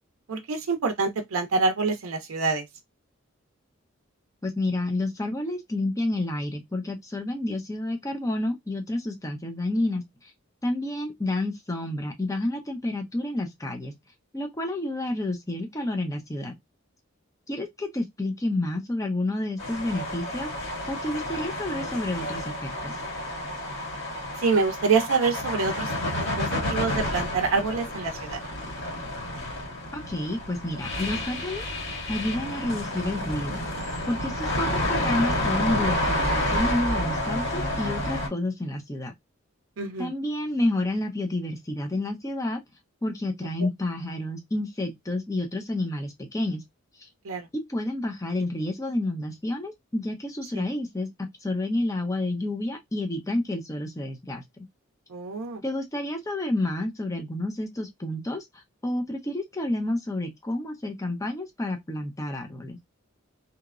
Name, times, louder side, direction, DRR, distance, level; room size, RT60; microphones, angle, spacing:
voice 1, 0.3-2.6 24.4-25.9 26.4-28.4 39.8-40.1 47.2-47.5 50.6-50.7 55.1-55.6, right 4 dB, 85° right, 0.5 m, -26 dB
voice 2, 4.4-10.3 10.6-13.9 14.3-16.6 17.5-22.9 29.9-33.7 34.1-39.1 40.0-42.6 43.0-46.6 47.0-47.1 47.5-54.7 55.6-58.4 58.8-62.8, left 1 dB, 15° left, 0.6 m, -30 dB
sound 1, 19.6-38.3, left 1 dB, 65° left, 1.8 m, -30 dB
2.9 x 2.1 x 2.3 m
head